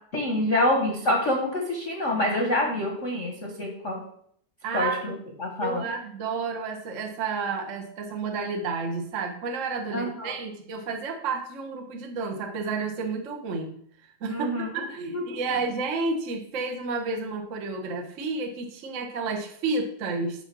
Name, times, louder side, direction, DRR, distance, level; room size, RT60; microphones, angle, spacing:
voice 1, 0.1-4.0 4.7-5.1 5.4-5.9 9.9-10.3 14.3-14.8 15.1-15.4, left 1 dB, 45° left, 0 dB, 0.9 m, -26 dB
voice 2, 4.6-5.2 5.6-13.8 14.2-20.4, right 4 dB, 75° right, 2 dB, 0.7 m, -31 dB
7.9 x 5.8 x 6.1 m, 0.66 s
omnidirectional pair, 3.4 m